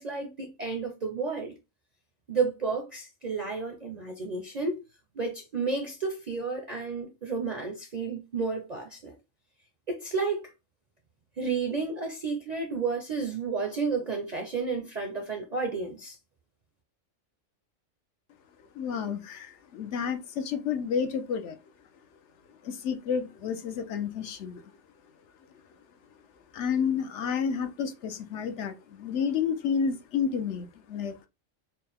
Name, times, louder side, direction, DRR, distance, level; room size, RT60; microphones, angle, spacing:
voice 1, 0.0-1.5 2.3-4.8 5.1-9.2 9.9-10.5 11.4-16.2, right 4 dB, 45° right, 0.6 m, -31 dB
voice 2, 18.7-21.6 22.6-24.6 26.5-31.2, left 6 dB, 65° left, 0.9 m, -30 dB
4.5 x 2.1 x 3.4 m
omnidirectional pair, 1.3 m